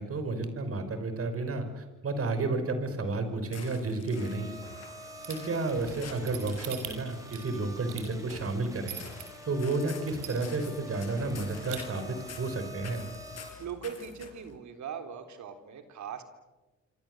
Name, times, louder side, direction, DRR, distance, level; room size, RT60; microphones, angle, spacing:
voice 1, 0.0-4.5 5.3-9.0 9.5-13.1, right 3 dB, 50° right, 9 dB, 5.8 m, -31 dB
sound 1, 3.4-14.6, left 6 dB, 60° left, 5.0 m, -50 dB
sound 2, 4.1-13.5, equal, 10° right, 6.8 m, -46 dB
sound 3, 5.2-9.2 9.7-9.8 10.1-10.7 11.0-11.1 11.4-11.8, right 11 dB, 85° right, 6.6 m, -42 dB
voice 2, 13.6-16.2, right 7 dB, 70° right, 7 dB, 4.0 m, -40 dB
26.5 x 26.5 x 8.1 m, 1.1 s
cardioid pair, 90°, 30 cm